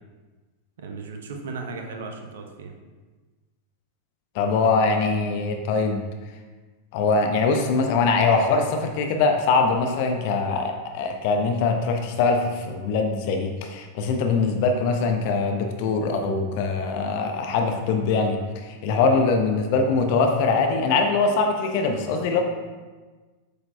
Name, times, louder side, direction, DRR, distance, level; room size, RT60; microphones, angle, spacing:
voice 1, 0.8-2.8 19.0-19.2 22.3-22.4, right 4 dB, 60° right, 3 dB, 0.8 m, -36 dB
voice 2, 4.3-6.0 6.9-22.4, left 4 dB, 45° left, 4 dB, 0.7 m, -22 dB
8.1 x 6.5 x 2.3 m, 1.3 s
figure-of-eight pair, 90°, 0 cm